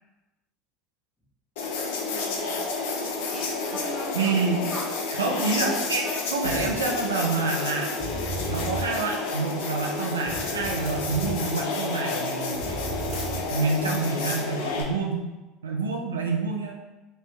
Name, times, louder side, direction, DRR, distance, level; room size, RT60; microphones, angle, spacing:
sound 1, 1.6-14.8, left 3 dB, 70° left, 0.6 m, -30 dB
voice 1, 1.9-2.7 3.3-4.9 5.4-6.1, left 1 dB, 5° left, -5 dB, 1.3 m, -39 dB
voice 2, 4.1-4.7 5.2-6.1 6.3-8.0 8.5-12.6 13.5-15.3 15.6-16.7, right 4 dB, 85° right, 1 dB, 0.4 m, -27 dB
sound 2, 6.4-6.9 8.0-8.9 10.3-11.4 12.5-13.5, right 3 dB, 35° right, 1.5 m, -34 dB
3.2 x 2.7 x 3.2 m, 1.1 s
hypercardioid pair, 70°, 0 cm